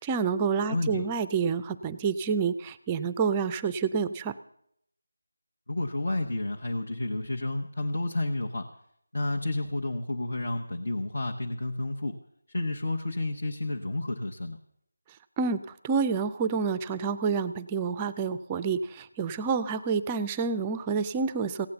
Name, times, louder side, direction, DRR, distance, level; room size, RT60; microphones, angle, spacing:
voice 1, 0.0-4.3 15.4-15.6 15.8-21.7, right 5 dB, 15° right, 14 dB, 0.4 m, -28 dB
voice 2, 0.7-1.0 5.7-8.7 9.1-12.2 12.5-14.6, left 2 dB, 60° left, 3 dB, 1.1 m, -31 dB
16.0 x 8.7 x 6.9 m, 0.73 s
figure-of-eight pair, 170°, 0 cm